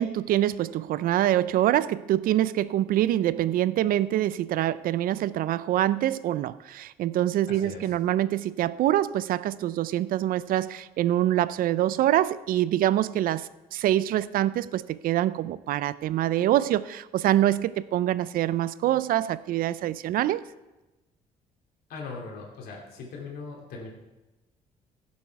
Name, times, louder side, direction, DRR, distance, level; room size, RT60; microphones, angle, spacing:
voice 1, 0.0-20.5, right 13 dB, 65° right, 18 dB, 0.4 m, -25 dB
voice 2, 7.5-7.9 21.9-23.9, left 4 dB, 75° left, -1 dB, 2.6 m, -40 dB
16.0 x 7.4 x 4.6 m, 1.1 s
cardioid pair, 145°, 15 cm